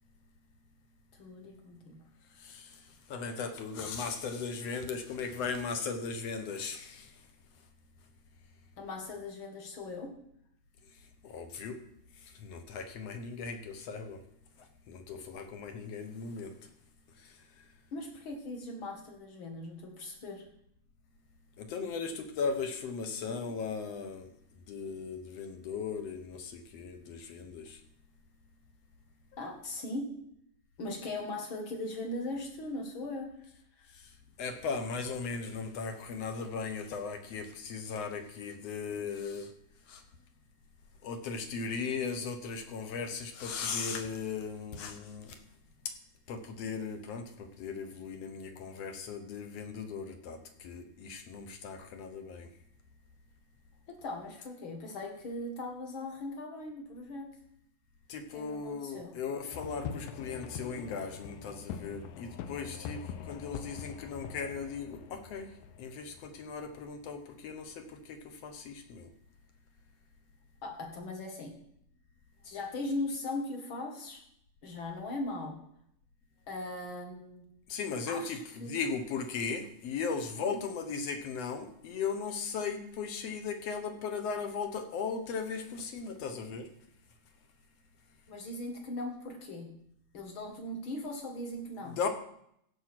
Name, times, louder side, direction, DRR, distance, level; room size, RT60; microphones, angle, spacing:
voice 1, 1.1-2.0 8.8-10.1 17.9-20.4 29.4-30.1 30.8-33.3 33.8-33.9 53.9-57.3 58.3-59.1 70.6-71.6 72.4-74.2 74.6-75.5 76.5-77.4 78.1-78.8 88.3-89.7 90.1-92.0, left 2 dB, 45° left, 3 dB, 2.2 m, -39 dB
voice 2, 2.4-7.2 11.2-11.8 12.2-14.2 14.6-16.5 17.2-17.4 21.6-24.3 24.7-27.8 33.9-34.1 34.4-39.5 39.9-40.0 41.0-45.4 46.3-52.5 58.1-65.5 65.8-69.1 77.7-86.7 91.8-92.1, left 5 dB, 65° left, 7 dB, 1.7 m, -37 dB
sound 1, 59.5-67.0, left 7 dB, 80° left, 2.3 m, -43 dB
16.0 x 5.5 x 6.0 m, 0.71 s
omnidirectional pair, 3.8 m